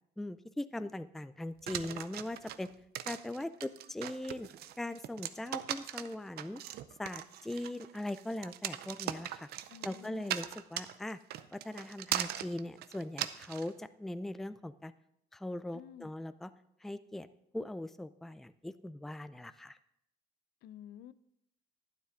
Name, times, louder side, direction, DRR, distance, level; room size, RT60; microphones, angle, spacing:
voice 1, 0.2-2.7 3.1-4.5 4.8-6.6 7.0-9.5 9.8-11.2 11.5-14.9 15.3-16.5 16.8-17.3 17.5-19.8, left 1 dB, ahead, 13 dB, 0.3 m, -40 dB
sound 1, 1.7-13.7, right 12 dB, 70° right, 0.6 m, -39 dB
voice 2, 9.7-10.3 15.7-16.1 20.6-21.1, left 11 dB, 70° left, 17 dB, 0.5 m, -51 dB
11.5 x 9.7 x 3.7 m, 0.78 s
cardioid pair, 110°, 17 cm